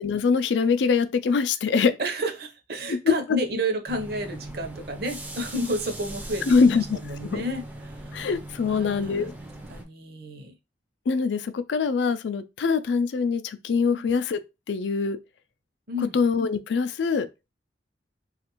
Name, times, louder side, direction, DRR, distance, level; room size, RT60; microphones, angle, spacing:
voice 1, 0.0-1.9 3.1-3.2 6.5-7.4 8.1-9.3 11.1-14.4 14.7-15.2 16.1-17.3, left 5 dB, 80° left, 0.4 m, -23 dB
voice 2, 2.0-8.2 8.6-10.6 13.9-14.1 15.9-16.2, equal, 55° right, 0.7 m, -31 dB
sound 1, 3.9-9.8, right 1 dB, 10° right, 0.4 m, -40 dB
3.3 x 2.4 x 2.9 m
head